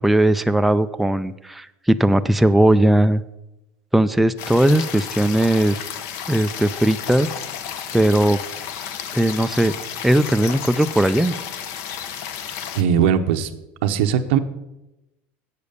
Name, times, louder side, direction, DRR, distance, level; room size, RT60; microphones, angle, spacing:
voice 1, 0.0-3.2 3.9-5.8 6.3-7.3 7.9-8.4 9.1-9.7 10.0-11.4, right 1 dB, ahead, 9 dB, 0.3 m, -18 dB
sound 1, 4.4-12.8, left 8 dB, 60° left, 0.9 m, -32 dB
voice 2, 12.7-13.5 13.8-14.4, right 8 dB, 85° right, 8 dB, 0.8 m, -19 dB
8.3 x 6.9 x 6.7 m, 0.94 s
supercardioid pair, 130°, 6 cm